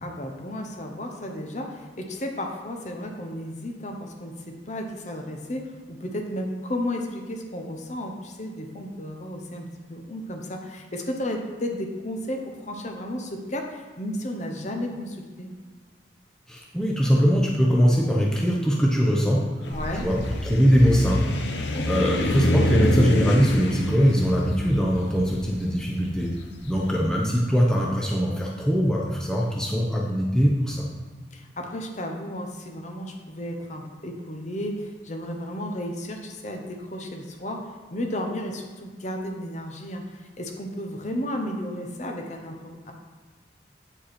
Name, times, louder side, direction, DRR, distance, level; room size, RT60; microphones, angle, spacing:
voice 1, 0.0-15.5 19.7-20.1 21.7-22.2 31.3-42.9, left 1 dB, 40° left, 2 dB, 0.9 m, -33 dB
voice 2, 16.5-26.3 26.6-30.9, equal, 5° left, -3 dB, 0.7 m, -22 dB
sound 1, 19.6-26.8, equal, 80° left, 0.8 m, -27 dB
8.6 x 5.2 x 4.3 m, 1.4 s
head